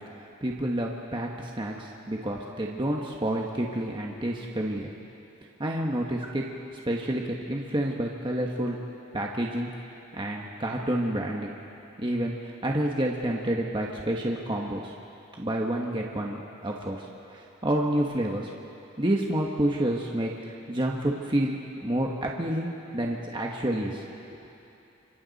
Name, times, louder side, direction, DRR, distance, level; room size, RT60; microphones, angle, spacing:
voice 1, 0.4-4.9 5.6-6.4 6.9-8.8 9.1-9.7 10.1-11.5 12.0-14.9 15.4-17.1 17.3-18.5 19.0-24.0, right 1 dB, 25° right, -1 dB, 1.3 m, -29 dB
29.5 x 26.0 x 4.2 m, 2.8 s
head